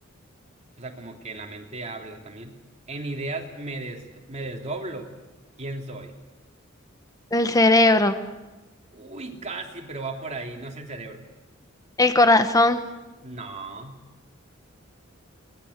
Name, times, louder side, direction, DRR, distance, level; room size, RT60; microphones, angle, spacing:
voice 1, 0.8-2.5 2.9-5.1 5.6-6.1 8.9-11.3 13.2-14.0, right 2 dB, 35° right, 2 dB, 3.2 m, -35 dB
voice 2, 7.3-8.2 12.0-12.8, left 2 dB, 15° left, 8 dB, 1.4 m, -18 dB
23.5 x 19.0 x 8.4 m, 1.1 s
head